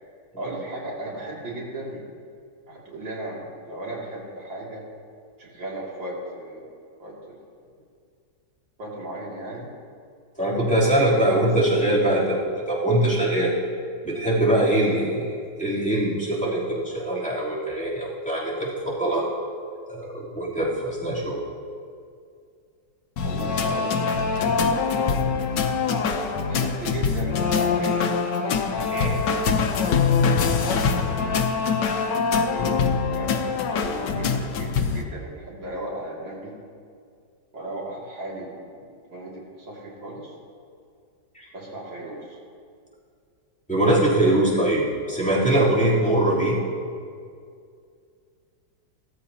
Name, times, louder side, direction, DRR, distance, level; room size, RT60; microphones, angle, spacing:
voice 1, 0.4-2.0 2.7-4.8 5.4-6.7 7.0-7.4 8.8-9.7 10.7-11.7 23.2-25.6 26.4-28.3 30.6-31.5 32.5-36.5 37.5-40.3 41.5-42.4 44.2-44.5, right 1 dB, 75° right, -5 dB, 3.4 m, -36 dB
voice 2, 10.4-13.5 14.0-19.2 19.9-21.4 28.9-29.2 41.3-41.5 43.7-46.6, right 1 dB, 5° left, -8 dB, 3.3 m, -22 dB
sound 1, 23.2-35.0, left 5 dB, 70° left, 1.5 m, -23 dB
16.5 x 14.0 x 2.9 m, 2.3 s
omnidirectional pair, 2.1 m